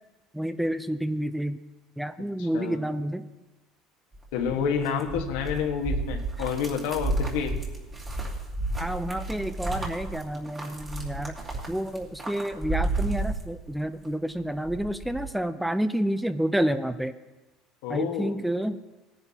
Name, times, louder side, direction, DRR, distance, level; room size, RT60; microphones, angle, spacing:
voice 1, 0.3-1.6 2.0-3.2 4.6-5.3 8.8-11.4 11.7-17.2 17.9-18.8, right 1 dB, 5° right, 12 dB, 0.5 m, -29 dB
voice 2, 2.4-2.8 4.3-7.6 17.8-18.4, left 7 dB, 85° left, 3 dB, 1.4 m, -29 dB
sound 1, 4.1-14.1 14.4-15.3, right 2 dB, 20° right, 2.6 m, -32 dB
19.0 x 10.5 x 2.9 m, 1.1 s
cardioid pair, 130°, 0 cm